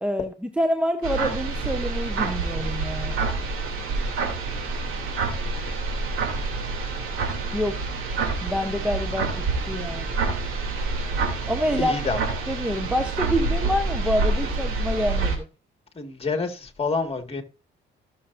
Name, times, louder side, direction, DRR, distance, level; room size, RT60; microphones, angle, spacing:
voice 1, 0.0-3.2 7.5-7.8 8.3-10.1 11.5-12.0 12.5-15.5, equal, 5° right, 1.0 m, -27 dB
sound 1, 1.0-15.4, right 3 dB, 75° right, 3.0 m, -27 dB
voice 2, 11.8-12.3 16.0-17.4, left 4 dB, 25° left, 1.9 m, -27 dB
16.5 x 6.9 x 2.6 m
cardioid pair, 85°, 21 cm